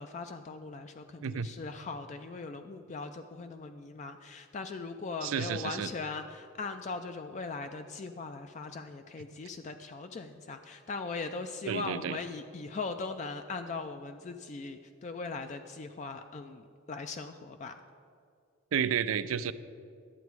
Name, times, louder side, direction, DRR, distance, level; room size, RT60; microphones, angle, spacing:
voice 1, 0.0-17.7, left 4 dB, 35° left, 7 dB, 0.3 m, -40 dB
voice 2, 5.2-5.9 11.7-12.2 18.7-19.5, right 7 dB, 85° right, 14 dB, 0.4 m, -31 dB
11.0 x 8.1 x 4.7 m, 2.4 s
head